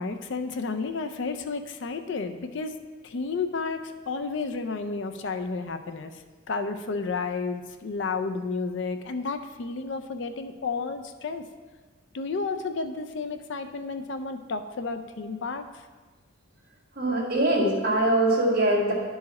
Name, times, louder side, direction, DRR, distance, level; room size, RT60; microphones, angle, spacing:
voice 1, 0.0-2.7 3.0-3.8 4.1-6.1 6.5-11.4 12.1-15.6, left 4 dB, 60° left, 7 dB, 0.4 m, -31 dB
voice 2, 17.0-18.9, right 1 dB, 45° right, -4 dB, 1.8 m, -22 dB
10.5 x 4.7 x 4.1 m, 1.4 s
head